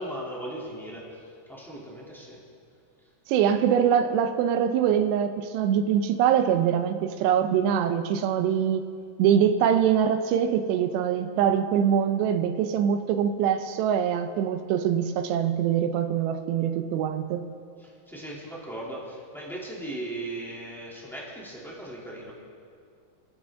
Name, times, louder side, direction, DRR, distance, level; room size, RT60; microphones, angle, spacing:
voice 1, 0.0-2.4 17.8-22.3, right 1 dB, ahead, -6 dB, 1.4 m, -38 dB
voice 2, 3.3-8.8 9.2-17.4, right 8 dB, 80° right, 9 dB, 2.8 m, -23 dB
28.5 x 10.0 x 3.6 m, 2.3 s
omnidirectional pair, 5.1 m